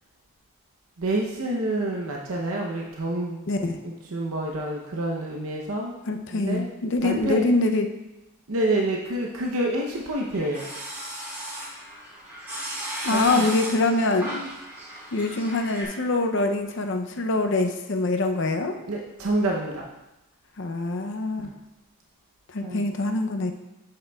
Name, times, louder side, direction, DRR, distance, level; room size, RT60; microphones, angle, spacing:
voice 1, 1.0-3.4 3.8-6.0 6.3-6.7 7.0-7.4 8.5-10.6 13.1-13.5 18.9-19.9 21.4-21.5 22.6-22.8, right 1 dB, 75° right, -1 dB, 0.7 m, -28 dB
voice 2, 3.5-3.8 6.1-7.9 13.0-14.5 15.1-18.8 20.6-21.5 22.5-23.5, left 2 dB, 55° left, 5 dB, 0.6 m, -24 dB
sound 1, 10.1-15.9, right 1 dB, 10° right, 2.0 m, -36 dB
7.6 x 7.4 x 2.3 m, 0.98 s
head